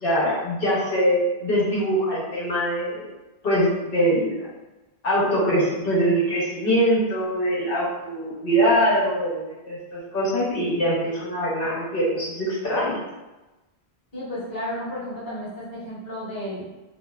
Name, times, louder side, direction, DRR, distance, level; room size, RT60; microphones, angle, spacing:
voice 1, 0.0-3.1 3.4-4.5 5.0-12.9, equal, 60° left, -7 dB, 1.0 m, -23 dB
voice 2, 14.1-16.6, left 1 dB, 20° left, -10 dB, 1.0 m, -32 dB
2.7 x 2.1 x 2.3 m, 1.1 s
omnidirectional pair, 1.1 m